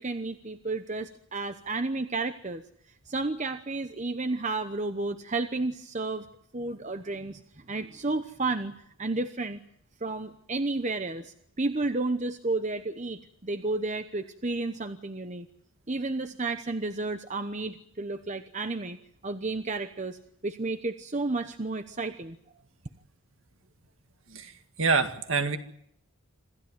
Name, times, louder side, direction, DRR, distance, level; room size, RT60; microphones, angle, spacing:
voice 1, 0.0-2.6 3.1-6.3 6.5-7.4 7.7-8.7 9.0-9.6 10.0-15.5 15.9-19.0 19.2-22.4, right 3 dB, 35° right, 9 dB, 0.9 m, -32 dB
voice 2, 24.8-25.6, right 4 dB, 60° right, 7 dB, 2.0 m, -25 dB
26.5 x 15.5 x 9.3 m, 0.71 s
head